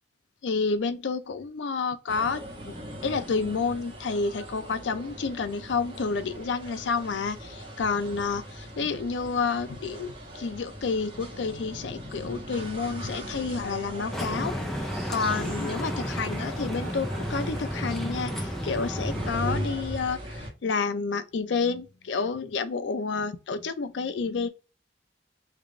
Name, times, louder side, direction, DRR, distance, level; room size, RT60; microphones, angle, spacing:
voice 1, 0.4-2.7 3.0-14.7 15.1-20.2 20.6-24.5, left 4 dB, 90° left, 0.5 m, -29 dB
sound 1, 2.1-20.5, equal, 30° right, 1.0 m, -39 dB
sound 2, 14.1-19.3, equal, ahead, 0.4 m, -32 dB
3.3 x 2.4 x 3.7 m
head